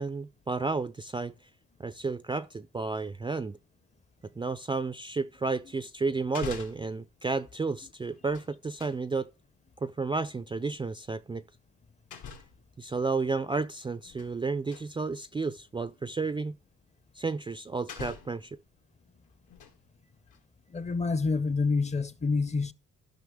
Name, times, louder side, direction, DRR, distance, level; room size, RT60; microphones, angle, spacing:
voice 1, 0.0-1.3 1.8-3.6 4.4-9.3 9.8-11.4 12.8-16.6 17.2-18.6, right 4 dB, 15° right, 0.4 m, -32 dB
sound 1, 6.3-7.0 8.1-9.0 10.6-10.8 12.1-12.7 13.8-14.4 14.7-14.9 15.8-15.9 17.3-17.4 17.9-18.5 19.3-19.9 20.3-20.4, left 6 dB, 85° left, 2.3 m, -44 dB
voice 2, 20.7-22.7, left 4 dB, 25° left, 0.6 m, -27 dB
14.0 x 5.6 x 3.5 m
cardioid pair, 90°, 30 cm